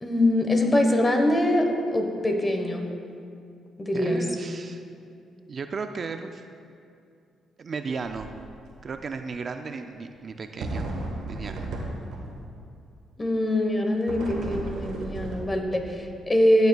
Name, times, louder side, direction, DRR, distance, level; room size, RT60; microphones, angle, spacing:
voice 1, 0.0-2.9 3.8-4.2 13.2-16.7, left 1 dB, 20° left, 3 dB, 1.1 m, -23 dB
voice 2, 3.9-4.8 5.5-6.4 7.6-8.3 8.8-10.9 11.3-11.7, right 4 dB, 45° right, 7 dB, 0.4 m, -35 dB
sound 1, 8.0-8.3 8.7-8.8 10.6-12.5 14.1-15.8, right 2 dB, 85° right, 1.3 m, -34 dB
14.0 x 8.0 x 2.3 m, 2.4 s
cardioid pair, 90°, 0 cm